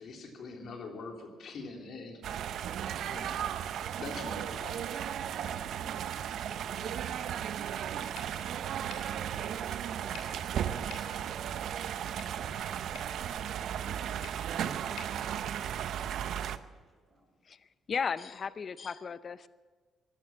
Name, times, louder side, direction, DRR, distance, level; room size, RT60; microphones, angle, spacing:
voice 1, 0.0-2.2 3.0-3.5 4.0-5.1, left 3 dB, 65° left, 2 dB, 3.2 m, -43 dB
sound 1, 2.2-16.6, right 9 dB, 75° right, 0.7 m, -35 dB
voice 2, 5.2-5.3, right 1 dB, 40° right, -1 dB, 5.5 m, -59 dB
sound 2, 8.1-16.2, left 6 dB, 85° left, 3.3 m, -54 dB
voice 3, 17.9-19.5, left 6 dB, 45° left, 15 dB, 0.6 m, -35 dB
16.0 x 12.0 x 7.3 m, 1.5 s
cardioid pair, 90°, 0 cm